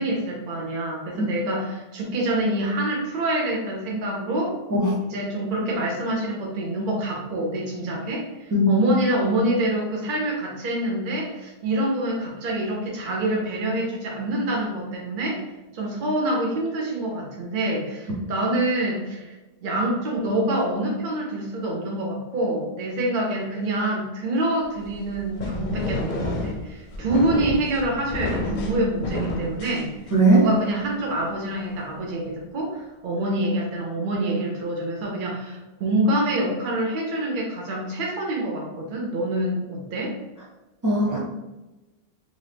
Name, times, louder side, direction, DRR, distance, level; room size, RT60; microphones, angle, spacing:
voice 1, 0.0-4.5 5.0-15.4 15.7-19.3 19.6-29.9 30.3-40.2, right 1 dB, 55° right, -2 dB, 0.8 m, -26 dB
sound 1, 24.8-30.4, left 1 dB, 55° left, 0.6 m, -30 dB
voice 2, 30.1-30.4 40.8-41.2, right 1 dB, 25° right, -4 dB, 0.5 m, -18 dB
2.7 x 2.5 x 3.3 m, 1.1 s
omnidirectional pair, 1.1 m